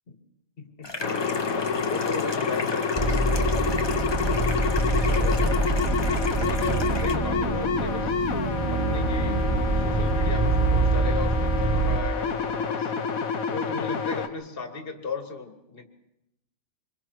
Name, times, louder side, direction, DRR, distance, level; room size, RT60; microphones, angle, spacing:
voice 1, 0.6-1.0 1.8-3.8 4.3-4.5 4.9-5.6 6.3-8.1 8.7-9.5 9.8-12.9 13.5-15.9, left 4 dB, 40° left, 6 dB, 1.9 m, -36 dB
sound 1, 0.8-7.1, left 2 dB, 20° left, 1.1 m, -36 dB
sound 2, 1.0-14.3, left 5 dB, 80° left, 1.5 m, -28 dB
sound 3, 3.0-12.0, right 3 dB, 20° right, 1.0 m, -25 dB
25.5 x 22.5 x 4.7 m, 0.84 s
omnidirectional pair, 1.4 m